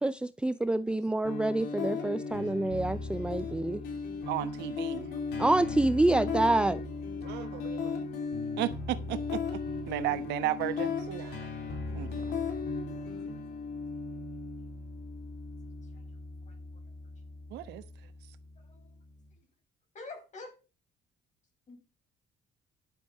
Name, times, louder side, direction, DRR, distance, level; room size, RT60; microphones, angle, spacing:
voice 1, 0.0-3.8 5.4-6.8, right 2 dB, 5° right, 0.4 m, -27 dB
sound 1, 1.3-19.2, left 4 dB, 80° left, 3.4 m, -36 dB
voice 2, 4.3-5.1 7.2-8.0 8.6-11.5 11.9-12.1 17.5-17.8, right 14 dB, 85° right, 1.1 m, -35 dB
voice 3, 5.1-5.5 7.4-7.6 11.6-11.7 12.0-12.1 13.3-13.4 15.9-16.0 16.5-16.6 18.6-18.9 19.9-20.6 21.7-21.8, left 3 dB, 45° left, 5.7 m, -48 dB
11.0 x 7.7 x 4.7 m
cardioid pair, 110°, 17 cm